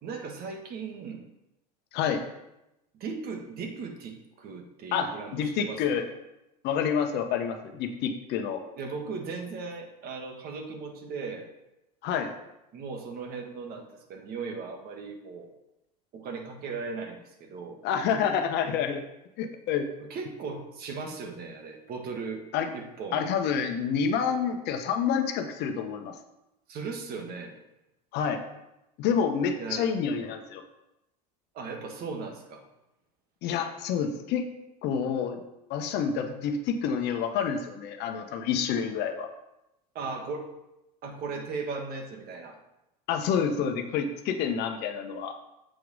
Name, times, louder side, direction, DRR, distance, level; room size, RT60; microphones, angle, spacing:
voice 1, 0.0-1.2 3.0-5.8 8.8-11.5 12.7-15.5 16.1-17.8 20.0-22.4 22.7-23.2 26.7-27.5 29.6-29.9 31.5-32.6 39.9-40.5 41.0-42.6, right 4 dB, 50° right, 4 dB, 1.5 m, -37 dB
voice 2, 1.9-2.2 4.9-6.1 6.6-8.6 12.0-12.3 17.8-19.0 19.4-19.9 22.5-22.7 23.1-26.2 28.1-28.4 29.0-30.6 33.4-34.5 34.8-35.4 35.7-39.3 43.1-45.4, left 7 dB, 55° left, 6 dB, 1.0 m, -28 dB
7.6 x 4.7 x 5.4 m, 0.90 s
supercardioid pair, 100°, 21 cm